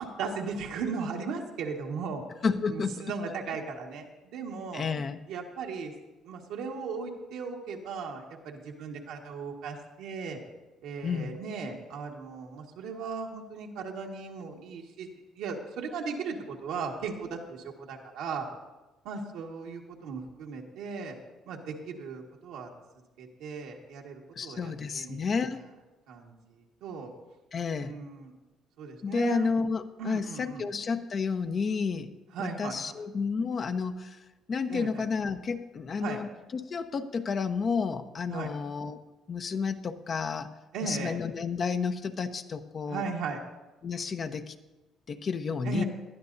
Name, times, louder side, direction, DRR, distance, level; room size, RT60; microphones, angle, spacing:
voice 1, 0.0-2.2 2.7-4.8 5.3-5.9 6.2-10.4 10.8-15.1 15.4-18.4 19.0-21.2 21.5-22.7 23.2-25.2 25.4-25.5 26.1-27.1 27.8-28.3 28.8-29.5 30.0-30.6 32.3-32.8 34.7-35.0 36.0-36.2 38.3-38.5 40.7-41.2 42.9-43.4 45.6-45.8, right 5 dB, 80° right, 0 dB, 1.7 m, -37 dB
voice 2, 2.4-3.1 4.7-5.2 11.0-11.3 24.4-25.6 27.5-28.0 29.0-32.1 32.4-39.0 39.3-40.5 40.8-43.0 43.8-44.5 45.1-45.8, left 5 dB, 45° left, 8 dB, 0.9 m, -31 dB
19.5 x 11.5 x 2.7 m, 1.1 s
supercardioid pair, 70°, 0 cm